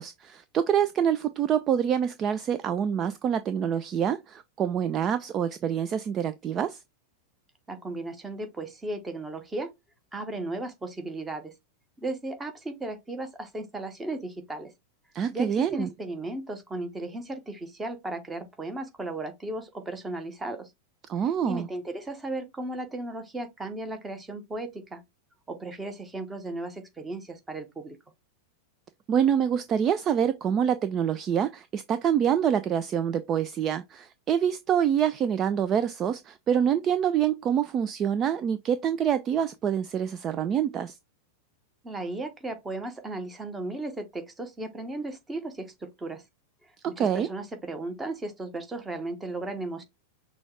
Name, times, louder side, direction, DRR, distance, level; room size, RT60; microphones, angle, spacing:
voice 1, 0.0-6.8 15.1-15.9 21.1-21.7 29.1-40.9 47.0-47.3, right 8 dB, 30° right, 0.3 m, -26 dB
voice 2, 7.7-9.7 10.1-11.5 12.0-14.7 15.3-20.7 21.4-25.0 25.5-28.0 41.8-46.2 46.8-49.8, right 2 dB, 15° right, 1.0 m, -35 dB
6.1 x 2.3 x 3.2 m
figure-of-eight pair, 90°, 0 cm